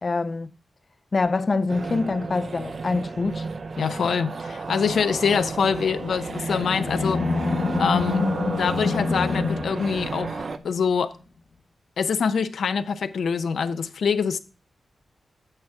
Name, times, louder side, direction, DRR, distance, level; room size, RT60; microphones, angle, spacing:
voice 1, 0.0-0.5 1.1-3.5, left 3 dB, 35° left, 0.4 m, -25 dB
sound 1, 1.7-10.6, right 4 dB, 45° right, 0.5 m, -32 dB
voice 2, 3.8-7.2 7.8-8.2 8.6-11.1 12.0-14.4, left 6 dB, 90° left, 0.6 m, -24 dB
Animal, 6.0-10.5, left 4 dB, 50° left, 0.9 m, -27 dB
8.9 x 7.5 x 3.6 m
wide cardioid pair, 155°, 0 cm